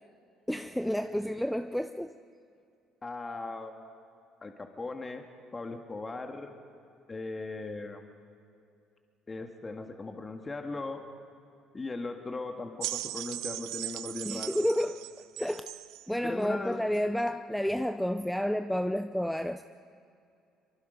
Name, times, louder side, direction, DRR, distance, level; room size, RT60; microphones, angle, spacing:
voice 1, 0.5-2.1 14.3-15.0 15.4-15.7 16.1-19.6, equal, 5° left, 9 dB, 0.5 m, -30 dB
voice 2, 3.0-3.9 4.4-5.3 5.5-6.5 7.1-8.0 9.3-11.0 11.7-14.6 16.2-16.8, left 3 dB, 25° left, 4 dB, 1.7 m, -38 dB
sound 1, 12.8-16.1 17.0-17.1, right 16 dB, 80° right, 0.4 m, -38 dB
23.5 x 23.5 x 5.2 m, 2.5 s
cardioid pair, 100°, 0 cm